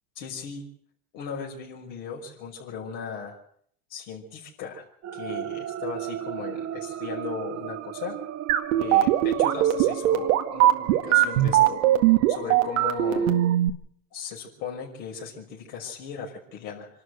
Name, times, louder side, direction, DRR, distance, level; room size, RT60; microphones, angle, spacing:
voice 1, 0.2-0.6 1.1-3.4 3.9-4.8 5.1-8.4 8.8-11.9 12.3-13.3 14.1-16.9, left 6 dB, 60° left, -1 dB, 5.8 m, -37 dB
sound 1, 5.0-13.6, right 11 dB, 40° right, 1.5 m, -35 dB
sound 2, 8.5-13.7, right 14 dB, 70° right, 2.0 m, -19 dB
25.5 x 12.5 x 8.1 m, 0.66 s
hypercardioid pair, 100°, 41 cm